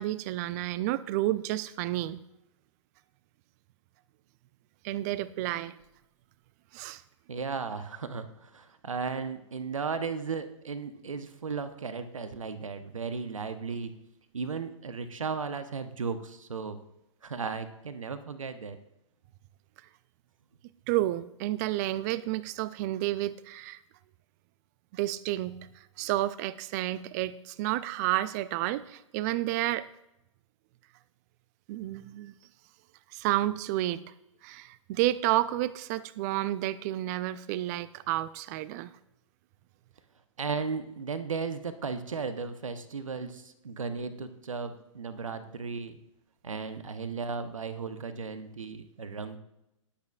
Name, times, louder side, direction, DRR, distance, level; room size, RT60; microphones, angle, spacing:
voice 1, 0.0-2.2 4.8-5.7 6.7-7.0 20.9-23.8 24.9-29.9 31.7-32.3 33.1-34.0 34.4-38.9, right 15 dB, 30° right, 18 dB, 0.4 m, -30 dB
voice 2, 7.3-14.0 14.3-16.8 17.2-18.8 40.4-46.0 46.4-49.4, right 5 dB, 75° right, 11 dB, 0.9 m, -35 dB
20.0 x 8.5 x 2.4 m, 0.85 s
figure-of-eight pair, 115°, 17 cm